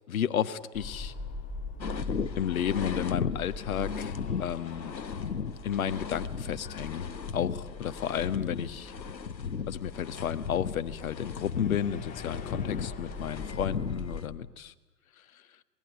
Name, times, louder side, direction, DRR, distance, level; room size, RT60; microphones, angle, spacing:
voice 1, 0.1-1.1 2.3-4.9 5.6-7.1 7.3-8.9 9.7-14.7, left 9 dB, 55° left, 11 dB, 1.5 m, -32 dB
sound 1, 0.7-14.2, left 3 dB, 15° left, 2.0 m, -42 dB
sound 2, 1.8-14.3, left 6 dB, 85° left, 1.1 m, -36 dB
27.0 x 20.0 x 9.6 m, 1.1 s
figure-of-eight pair, 125°, 50 cm